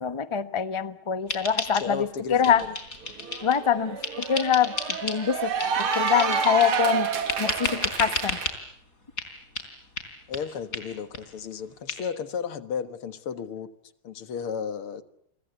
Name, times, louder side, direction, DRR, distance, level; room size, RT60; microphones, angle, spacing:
voice 1, 0.0-2.6 3.4-4.0 4.3-4.7 5.0-5.5 5.9-7.1 7.4-8.4, left 8 dB, 25° left, 0.7 m, -24 dB
sound 1, 1.3-2.1 2.4-3.6 4.0-5.2 5.6-6.8 7.3-8.6 9.2-9.3 9.6-9.7 10.0-10.1 10.3-10.4 10.7-10.8 11.1-11.2 11.5-11.6 11.9-12.0, left 3 dB, 40° left, 4.4 m, -32 dB
voice 2, 1.6-2.8 10.3-13.7 14.0-15.0, left 7 dB, 90° left, 2.4 m, -33 dB
Cheering / Applause, 2.6-2.7 3.1-8.5, right 6 dB, 85° right, 2.9 m, -29 dB
30.0 x 24.0 x 8.1 m
omnidirectional pair, 2.3 m